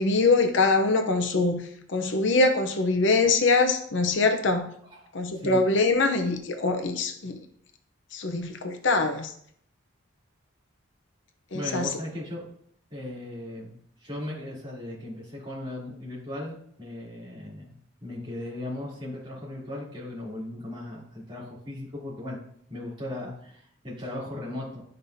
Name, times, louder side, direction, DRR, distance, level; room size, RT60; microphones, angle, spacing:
voice 1, 0.0-1.6 1.9-4.7 5.1-7.4 8.1-9.3 11.5-11.9, left 3 dB, 60° left, 6 dB, 0.7 m, -23 dB
voice 2, 11.5-12.5 12.9-13.7 14.0-17.7 18.0-22.4 22.7-24.8, left 1 dB, 25° right, -7 dB, 3.0 m, -37 dB
11.5 x 5.3 x 2.7 m, 0.65 s
head